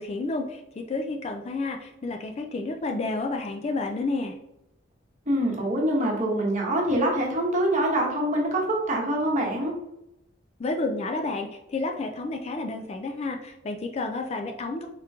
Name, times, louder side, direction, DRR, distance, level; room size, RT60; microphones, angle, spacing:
voice 1, 0.0-4.3 10.6-14.9, left 3 dB, 30° left, 4 dB, 0.3 m, -30 dB
voice 2, 5.3-9.8, right 1 dB, 40° right, -1 dB, 1.0 m, -25 dB
3.7 x 2.9 x 3.4 m, 0.85 s
head